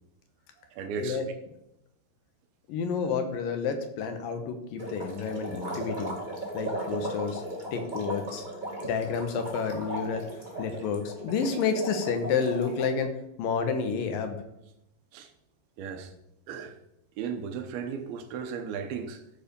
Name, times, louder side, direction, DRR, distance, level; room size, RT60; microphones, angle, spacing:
voice 1, 0.7-1.2 15.1-15.3 15.8-16.1 16.5-16.7 17.2-19.2, right 6 dB, 85° right, 2.9 m, -35 dB
voice 2, 2.7-6.1 6.5-7.4 7.7-8.4 8.8-10.2 10.6-13.1 13.4-14.4, left 5 dB, 70° left, 2.6 m, -30 dB
sound 1, 4.8-12.8, right 1 dB, 25° right, 1.1 m, -37 dB
13.5 x 4.9 x 5.2 m
omnidirectional pair, 4.3 m